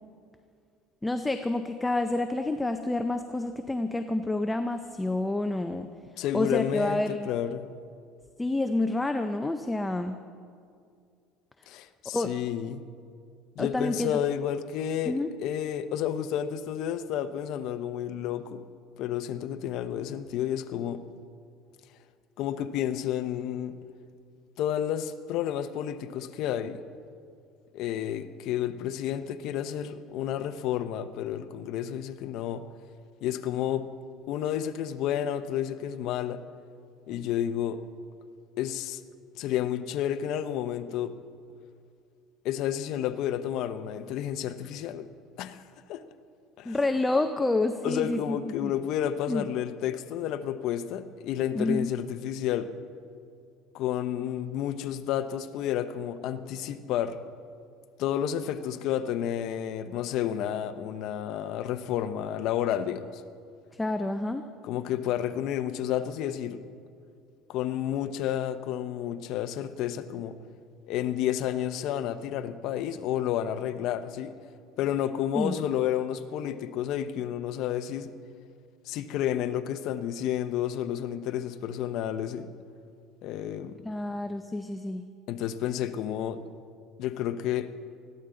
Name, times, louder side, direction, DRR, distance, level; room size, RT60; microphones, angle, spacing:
voice 1, 1.0-5.9 6.3-7.3 8.4-10.2 12.1-12.3 13.6-14.2 15.1-15.3 46.7-48.7 49.3-49.4 51.5-51.9 63.7-64.5 75.3-75.5 83.8-85.0, left 2 dB, 10° left, 7 dB, 0.5 m, -28 dB
voice 2, 6.2-7.7 11.7-12.8 13.6-15.2 15.4-18.6 19.0-21.0 22.4-23.8 24.6-26.8 27.7-32.6 33.2-33.9 34.3-36.4 37.1-37.8 38.6-39.0 39.4-41.1 42.4-45.1 45.4-45.6 45.9-46.0 46.6-46.8 47.8-52.7 53.7-57.2 58.0-63.2 64.6-66.6 67.5-70.4 70.9-74.3 74.8-78.1 78.9-82.5 83.2-83.8 85.3-86.5 87.0-87.7, left 10 dB, 55° left, 10 dB, 0.7 m, -31 dB
20.5 x 14.0 x 3.8 m, 2.3 s
cardioid pair, 150°, 0 cm